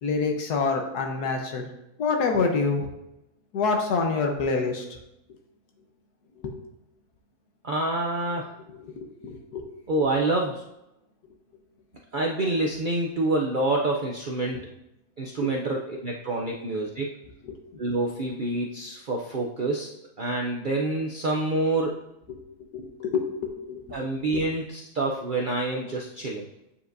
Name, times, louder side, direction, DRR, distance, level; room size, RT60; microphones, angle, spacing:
voice 1, 0.0-1.7 2.0-2.9 3.5-4.8 6.4-6.5 9.0-9.7 15.4-15.5 17.4-17.6 22.3-22.4 22.7-23.8 24.3-24.4, left 4 dB, 85° left, 3 dB, 1.5 m, -27 dB
voice 2, 7.6-8.5 9.9-10.6 12.1-14.6 15.2-17.1 17.8-22.0 23.9-26.5, right 2 dB, 65° right, -1 dB, 0.5 m, -27 dB
8.5 x 4.9 x 2.6 m, 0.89 s
omnidirectional pair, 1.6 m